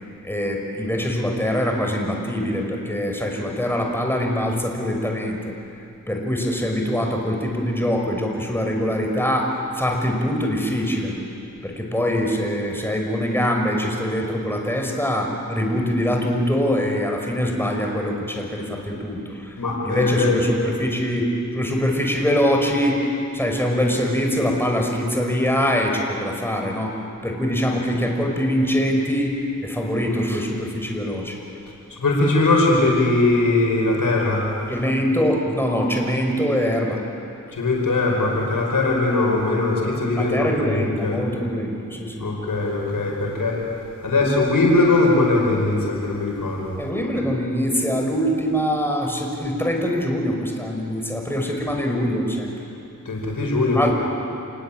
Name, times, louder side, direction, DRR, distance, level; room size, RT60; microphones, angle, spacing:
voice 1, 0.2-5.5 6.1-11.1 11.6-19.6 19.8-23.1 23.3-27.0 27.2-31.4 34.7-37.0 40.2-42.3 46.8-52.6 53.7-53.9, equal, 5° left, 1 dB, 5.7 m, -23 dB
voice 2, 19.6-20.4 31.9-34.4 37.5-41.2 42.2-43.6 44.0-46.8 53.1-53.9, left 2 dB, 80° left, -1 dB, 5.7 m, -20 dB
29.0 x 18.5 x 9.0 m, 2.6 s
cardioid pair, 40°, 32 cm